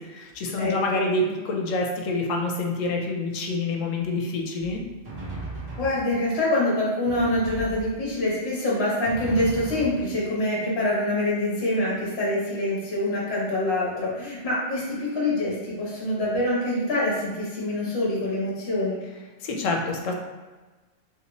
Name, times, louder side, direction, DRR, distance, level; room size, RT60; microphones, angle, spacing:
voice 1, 0.0-4.8 19.4-20.1, left 2 dB, 85° left, 1 dB, 1.0 m, -27 dB
voice 2, 0.6-1.1 5.8-19.0, left 1 dB, 55° left, -5 dB, 1.1 m, -25 dB
Drum, 4.6-6.5 7.0-8.4 9.0-10.6, right 2 dB, 45° right, 1.2 m, -38 dB
3.1 x 2.8 x 2.9 m, 1.2 s
omnidirectional pair, 1.3 m